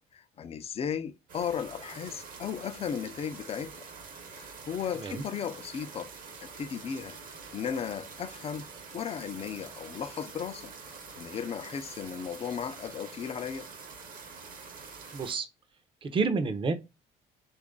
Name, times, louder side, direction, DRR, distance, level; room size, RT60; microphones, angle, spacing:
voice 1, 0.0-3.9 4.3-6.1 6.4-7.2 7.5-8.7 8.9-10.7 11.2-13.7, left 7 dB, 35° left, 0.4 m, -36 dB
sound 1, 1.3-15.3, right 5 dB, 55° right, 0.9 m, -46 dB
voice 2, 15.1-15.5 16.0-16.7, right 4 dB, 30° right, 0.6 m, -29 dB
3.0 x 2.5 x 3.6 m
cardioid pair, 110°, 17 cm